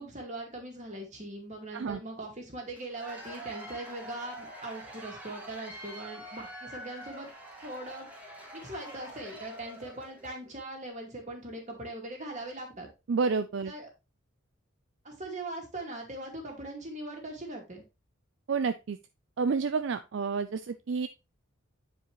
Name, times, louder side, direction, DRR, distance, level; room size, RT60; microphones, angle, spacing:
voice 1, 0.0-7.3 7.6-8.1 8.5-12.9 13.7-13.9 15.0-17.8, right 2 dB, 35° right, 1 dB, 2.3 m, -40 dB
Cheering / Applause / Crowd, 2.8-10.4, equal, 10° right, 1.8 m, -45 dB
voice 2, 13.1-13.7 18.5-19.0 19.4-21.1, right 5 dB, 60° right, 11 dB, 0.4 m, -29 dB
9.0 x 5.1 x 3.1 m, 0.26 s
head